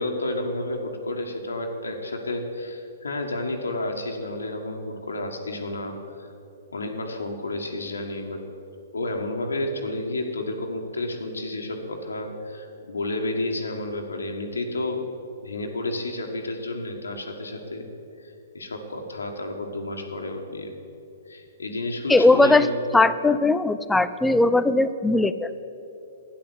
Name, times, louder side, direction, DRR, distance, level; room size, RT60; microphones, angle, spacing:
voice 1, 0.0-6.3 6.7-8.4 8.9-15.0 15.4-17.9 18.2-20.7 21.2-22.8, left 2 dB, 80° left, 2 dB, 1.6 m, -31 dB
voice 2, 22.1-22.7 22.9-25.5, left 2 dB, 5° left, 13 dB, 0.5 m, -19 dB
12.0 x 10.0 x 8.1 m, 2.8 s
figure-of-eight pair, 120°, 0 cm